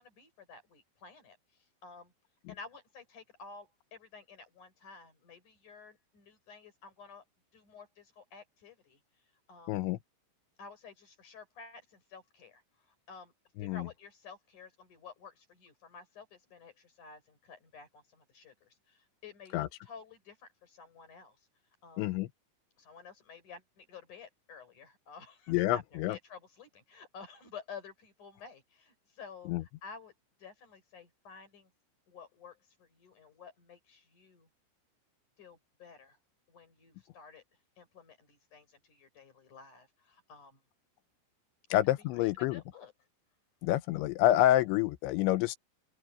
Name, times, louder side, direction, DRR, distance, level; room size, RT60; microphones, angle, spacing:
voice 1, 0.0-2.1 2.5-7.2 7.5-9.0 9.5-9.9 10.6-13.3 13.6-21.5 21.8-22.1 22.8-29.5 29.8-30.1 30.4-31.7 32.1-34.5 35.4-36.2 36.5-37.4 37.8-40.6 41.7-41.8 42.1-42.9, left 5 dB, 40° left, 7.0 m, -52 dB
voice 2, 9.7-10.0 13.6-13.9 19.5-19.7 22.0-22.3 25.5-26.2 29.5-29.6 41.7-42.6 43.6-45.6, left 14 dB, 80° left, 2.9 m, -28 dB
open air
omnidirectional pair, 5.6 m